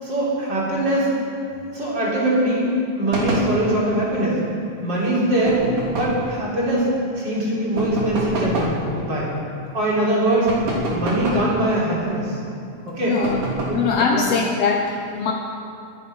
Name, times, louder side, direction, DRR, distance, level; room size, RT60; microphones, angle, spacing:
voice 1, 0.0-1.1 1.7-2.7 3.0-4.4 4.8-6.9 7.2-9.3 9.7-10.5 10.9-12.4 12.9-13.1 13.7-13.8 14.1-14.2, right 1 dB, 30° right, -6 dB, 4.1 m, -22 dB
sound 1, 3.1-3.5 5.5-6.2 7.8-8.8 10.5-11.5 13.2-13.9, right 2 dB, 65° right, 4.4 m, -26 dB
voice 2, 13.0-13.4 13.7-15.3, left 5 dB, 85° left, 2 dB, 1.4 m, -21 dB
23.5 x 9.1 x 5.4 m, 2.5 s
omnidirectional pair, 4.0 m